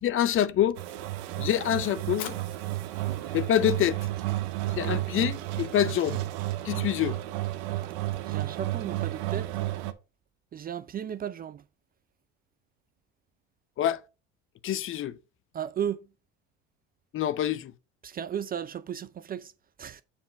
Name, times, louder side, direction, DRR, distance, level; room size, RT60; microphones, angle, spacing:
voice 1, 0.0-0.8 1.4-2.4 3.3-4.0 4.7-6.2 6.6-7.2 13.8-14.0 14.6-15.2 17.1-17.7, left 11 dB, 40° left, 0.6 m, -26 dB
sound 1, 0.8-9.9, right 16 dB, 85° right, 0.8 m, -32 dB
Fire, 2.0-9.3, left 10 dB, 80° left, 1.2 m, -50 dB
voice 2, 8.3-9.5 10.5-11.6 15.5-16.0 18.0-19.5 19.8-20.0, right 9 dB, 30° right, 0.4 m, -34 dB
7.3 x 3.5 x 5.1 m
supercardioid pair, 95°, 31 cm